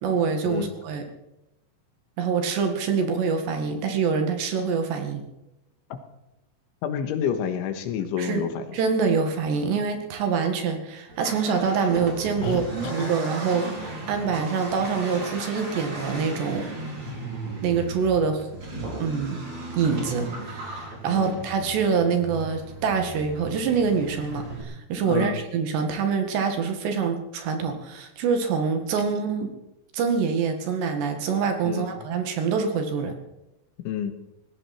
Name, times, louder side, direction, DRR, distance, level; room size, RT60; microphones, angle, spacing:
voice 1, 0.0-1.0 2.2-5.2 8.2-8.4 8.7-16.7 17.6-18.5 19.0-19.4 19.8-29.5 29.9-33.1, right 5 dB, 65° right, 6 dB, 4.1 m, -25 dB
voice 2, 6.8-8.8 12.4-13.1 21.1-21.4 25.0-25.4 31.6-32.0 33.8-34.1, left 8 dB, 80° left, 8 dB, 3.7 m, -29 dB
Accelerating revving vroom, 11.1-24.6, right 2 dB, 25° right, 3.7 m, -36 dB
19.5 x 15.5 x 4.4 m, 0.91 s
omnidirectional pair, 5.5 m